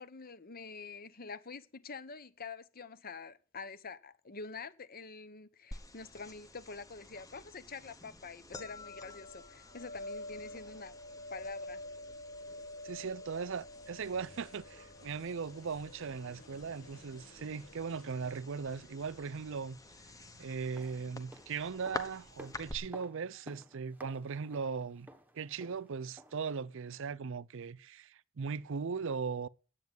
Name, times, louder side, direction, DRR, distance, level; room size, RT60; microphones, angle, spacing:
voice 1, 0.0-11.0 11.3-11.8, left 4 dB, 45° left, 1.0 m, -46 dB
sound 1, 5.7-22.7, left 2 dB, 15° left, 1.1 m, -48 dB
sound 2, 10.2-21.4, left 2 dB, 75° left, 2.1 m, -61 dB
voice 2, 12.8-19.8 20.4-25.1 25.3-29.5, right 5 dB, 65° right, 0.5 m, -38 dB
sound 3, 20.5-26.5 26.8-26.9, right 1 dB, 10° right, 1.2 m, -55 dB
9.4 x 8.5 x 9.4 m
head